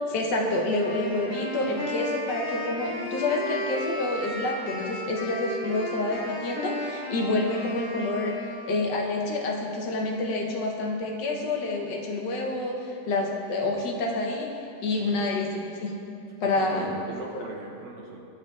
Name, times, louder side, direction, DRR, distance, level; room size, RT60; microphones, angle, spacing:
voice 1, 0.1-8.4 8.7-14.5 14.8-15.9 16.4-16.9 17.3-17.4, left 2 dB, 75° left, 0 dB, 1.4 m, -28 dB
Wind instrument woodwind instrument, 0.8-9.0, left 1 dB, 50° left, 1.5 m, -34 dB
voice 2, 16.4-18.2, right 3 dB, 70° right, 0 dB, 1.1 m, -40 dB
12.0 x 4.8 x 2.3 m, 2.6 s
omnidirectional pair, 1.9 m